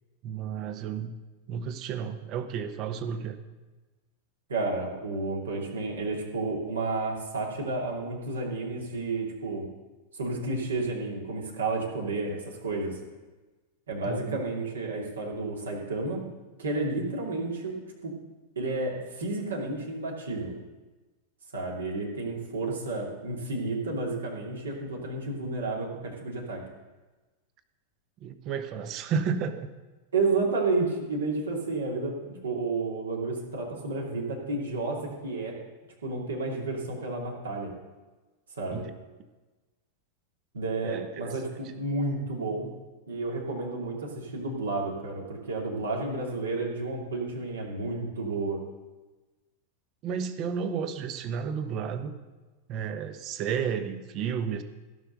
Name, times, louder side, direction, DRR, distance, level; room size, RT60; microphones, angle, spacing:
voice 1, 0.2-1.2 1.5-3.4 14.1-14.4 28.2-29.7 38.7-38.9 40.8-41.4 50.0-52.1 52.7-54.6, right 7 dB, 40° right, 10 dB, 1.0 m, -32 dB
voice 2, 4.5-9.7 10.1-13.0 13.9-16.2 16.6-17.7 18.0-18.1 18.6-20.5 21.5-26.6 30.1-35.6 36.0-37.7 38.6-38.8 40.5-41.5 41.8-42.7 43.1-48.6, right 3 dB, 70° right, -1 dB, 2.7 m, -31 dB
16.0 x 5.8 x 6.7 m, 1.2 s
figure-of-eight pair, 90°, 0 cm